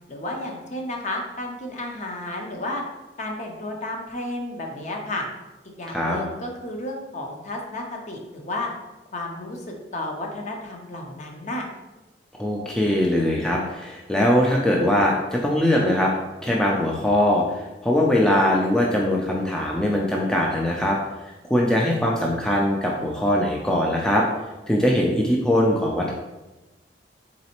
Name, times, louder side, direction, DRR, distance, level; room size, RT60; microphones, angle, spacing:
voice 1, 0.1-2.8 3.2-5.3 5.8-8.7 9.1-11.7, left 1 dB, 40° left, 1 dB, 0.6 m, -32 dB
voice 2, 5.9-6.2 12.3-16.1 16.4-21.0 21.4-24.3 24.7-26.1, left 1 dB, 5° left, -2 dB, 0.3 m, -21 dB
4.0 x 3.1 x 2.9 m, 1.1 s
head